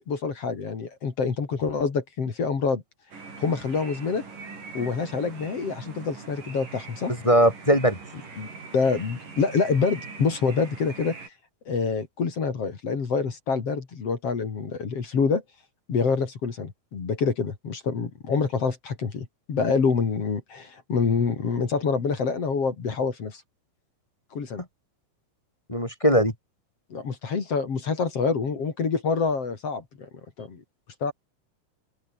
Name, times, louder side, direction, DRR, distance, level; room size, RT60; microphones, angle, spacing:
voice 1, 0.1-2.8 3.4-4.2 4.7-7.1 8.4-8.5 8.7-11.2 11.7-15.4 15.9-23.4 24.3-24.6 26.9-30.1 30.4-30.6 31.0-31.1, left 5 dB, 45° left, 3.7 m, -26 dB
sound 1, 3.1-11.3, right 4 dB, 60° right, 7.8 m, -42 dB
voice 2, 7.2-8.0 25.7-26.3, equal, 10° left, 2.3 m, -19 dB
open air
omnidirectional pair, 4.2 m